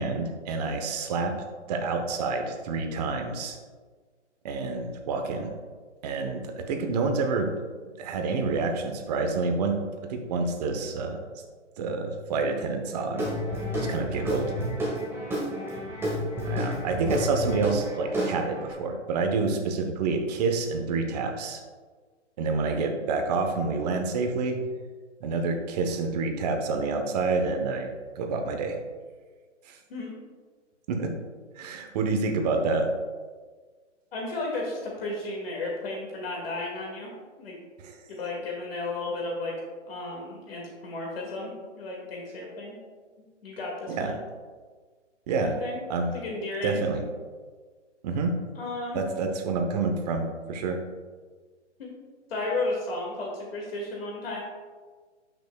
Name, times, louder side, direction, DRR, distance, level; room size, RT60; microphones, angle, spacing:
voice 1, 0.0-1.3 1.7-3.6 4.4-5.5 6.0-7.5 8.0-9.7 10.1-11.2 11.8-13.3 13.8-14.7 16.4-21.6 22.4-24.6 25.2-27.9 28.2-28.8 29.7-29.8 30.9-31.1 31.6-32.9 37.8-37.9 43.9-44.1 45.3-45.5 45.9-46.1 46.6-47.0 48.0-48.3 48.9-50.8, right 4 dB, 35° right, 4 dB, 1.0 m, -28 dB
Guitar / Drum, 13.1-18.7, equal, 5° right, 1.5 m, -30 dB
voice 2, 34.1-37.1 37.4-37.6 38.1-39.5 39.9-42.8 43.4-44.2 45.4-45.8 46.1-46.8 48.6-49.0 51.8-51.9 52.3-54.4, left 2 dB, 55° left, -2 dB, 2.1 m, -33 dB
11.5 x 6.1 x 2.3 m, 1.5 s
hypercardioid pair, 140°, 36 cm